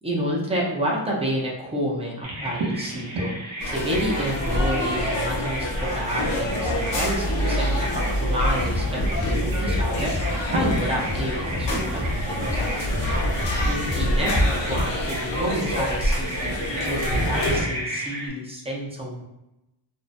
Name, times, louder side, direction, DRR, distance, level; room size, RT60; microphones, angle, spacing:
voice 1, 0.0-3.4 3.6-13.0 13.7-19.2, equal, 15° right, -3 dB, 0.4 m, -29 dB
Bird vocalization bird call bird song, 2.2-18.3, right 1 dB, 75° right, 0.7 m, -34 dB
sound 1, 3.6-17.6, equal, 65° left, 0.7 m, -26 dB
sound 2, 8.5-14.4, left 2 dB, 40° right, 0.8 m, -32 dB
2.6 x 2.0 x 2.4 m, 0.94 s
wide cardioid pair, 170°, 46 cm